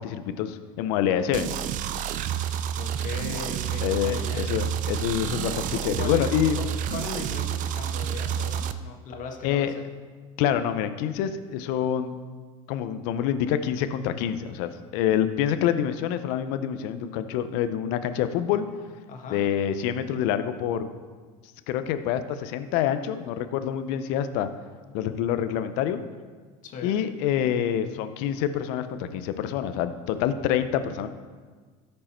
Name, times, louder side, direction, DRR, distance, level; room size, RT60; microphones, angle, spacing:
voice 1, 0.0-1.6 3.8-6.6 9.4-9.7 10.4-12.1 12.7-18.6 19.3-20.9 21.7-24.5 24.9-26.0 26.8-31.1, left 10 dB, 70° left, 11 dB, 0.7 m, -26 dB
sound 1, 1.3-8.7, right 9 dB, 50° right, 0.6 m, -29 dB
voice 2, 2.8-4.4 5.7-9.7 19.1-19.5 26.6-27.0, left 4 dB, 50° left, 3 dB, 1.6 m, -38 dB
14.0 x 5.4 x 4.4 m, 1.5 s
supercardioid pair, 95°, 17 cm